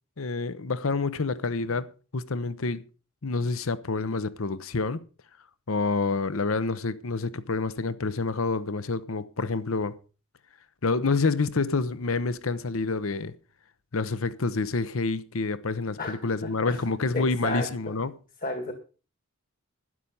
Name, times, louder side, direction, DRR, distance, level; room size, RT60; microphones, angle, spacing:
voice 1, 0.2-2.8 3.2-5.0 5.7-10.0 10.8-13.3 13.9-18.2, left 3 dB, 70° left, 0.8 m, -28 dB
voice 2, 16.4-16.8 17.1-18.0 18.4-18.7, left 2 dB, 45° left, 2.0 m, -32 dB
12.5 x 10.0 x 5.5 m
head